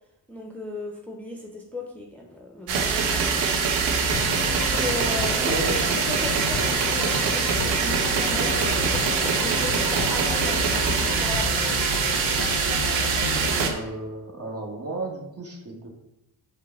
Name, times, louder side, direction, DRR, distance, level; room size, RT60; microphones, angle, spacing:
voice 1, 0.3-3.4 4.6-5.6 6.1-11.6, left 1 dB, 5° left, -1 dB, 0.7 m, -36 dB
sound 1, 2.7-13.7, right 5 dB, 80° right, 0.7 m, -24 dB
sound 2, 4.1-13.7, left 7 dB, 55° left, 0.6 m, -33 dB
voice 2, 5.4-5.9 13.5-15.9, right 2 dB, 35° right, 0 dB, 1.2 m, -33 dB
sound 3, 5.5-13.7, right 3 dB, 55° right, 0.9 m, -40 dB
5.0 x 2.2 x 4.2 m, 0.88 s
supercardioid pair, 40°, 44 cm